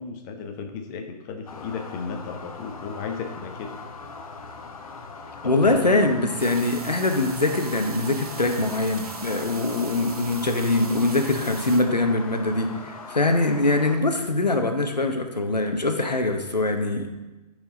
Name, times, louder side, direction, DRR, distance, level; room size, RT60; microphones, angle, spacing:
voice 1, 0.0-3.8 5.4-6.1, left 5 dB, 30° left, 4 dB, 0.9 m, -34 dB
sound 1, 1.5-14.0, left 4 dB, 60° left, 1.0 m, -40 dB
voice 2, 5.4-17.1, left 2 dB, 90° left, 5 dB, 1.0 m, -23 dB
sound 2, 6.4-11.8, right 5 dB, 65° right, 1.1 m, -40 dB
13.5 x 4.8 x 3.8 m, 1.1 s
figure-of-eight pair, 120°, 21 cm